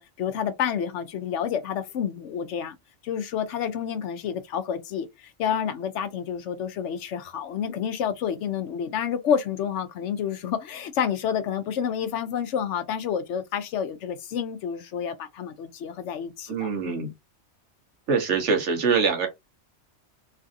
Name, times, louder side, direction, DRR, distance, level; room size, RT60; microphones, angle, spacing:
voice 1, 0.0-2.8 3.0-17.1, left 8 dB, 75° left, 0.9 m, -29 dB
voice 2, 16.5-17.1 18.1-19.3, right 5 dB, 70° right, 1.2 m, -24 dB
3.2 x 2.5 x 2.4 m
omnidirectional pair, 1.3 m